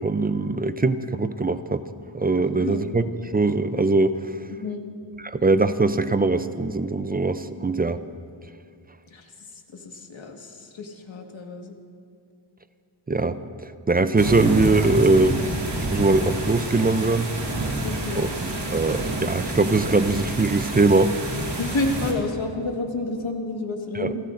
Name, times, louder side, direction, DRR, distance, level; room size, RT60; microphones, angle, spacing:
voice 1, 0.0-1.8 2.1-3.0 3.3-4.2 5.2-8.0 13.1-15.4 15.9-17.3 18.2-21.1 24.0-24.1, right 3 dB, 20° right, 12 dB, 0.4 m, -21 dB
voice 2, 2.4-2.9 4.5-4.9 9.1-11.7 17.8-18.3 21.6-24.2, left 2 dB, 70° left, 2 dB, 1.7 m, -30 dB
sound 1, 14.1-22.1, right 1 dB, 55° right, 2.5 m, -29 dB
28.0 x 14.5 x 2.6 m, 2.4 s
wide cardioid pair, 85°, 48 cm